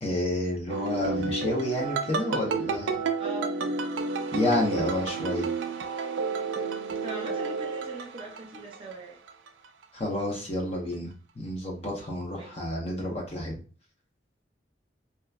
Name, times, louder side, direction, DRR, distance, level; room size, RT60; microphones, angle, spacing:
voice 1, 0.0-3.0 4.3-5.5 9.9-13.6, left 1 dB, 35° left, -1 dB, 0.7 m, -30 dB
sound 1, 0.7-9.0 9.3-9.8, right 4 dB, 85° right, 0.3 m, -31 dB
voice 2, 3.2-3.5 6.7-9.2 12.3-12.6, right 3 dB, 30° right, 0 dB, 0.5 m, -40 dB
2.9 x 2.2 x 2.3 m, 0.37 s
head